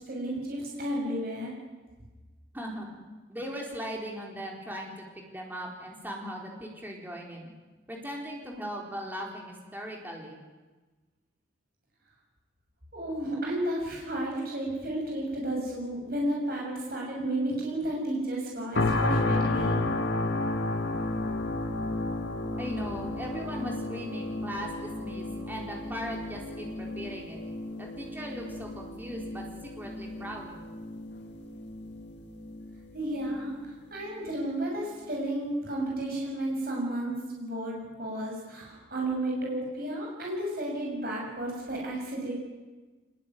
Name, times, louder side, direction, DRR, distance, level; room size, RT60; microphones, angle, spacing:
voice 1, 0.0-1.5 12.9-19.8 32.9-42.3, right 1 dB, 50° right, -2 dB, 7.0 m, -32 dB
voice 2, 2.5-2.9 3.3-7.5 7.9-10.4 22.6-27.4 27.8-30.6, equal, 10° right, -1 dB, 4.3 m, -39 dB
sound 1, 18.8-33.8 34.3-34.4, left 2 dB, 65° left, 2.4 m, -32 dB
25.0 x 20.5 x 9.4 m, 1.3 s
head